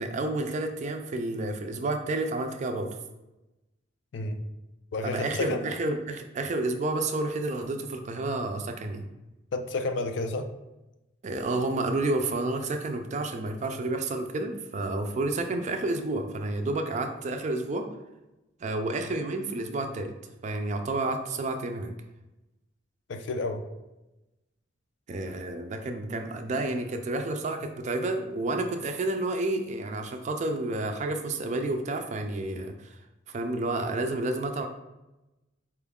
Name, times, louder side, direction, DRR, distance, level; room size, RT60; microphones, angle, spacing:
voice 1, 0.0-2.9 5.0-9.1 11.2-17.9 18.6-20.1 20.4-21.9 25.1-32.9 33.3-34.7, right 2 dB, 35° right, 5 dB, 0.4 m, -30 dB
voice 2, 4.9-5.7 9.5-10.5 23.1-23.6, left 2 dB, 65° left, 7 dB, 0.4 m, -30 dB
4.4 x 2.3 x 3.5 m, 1.0 s
head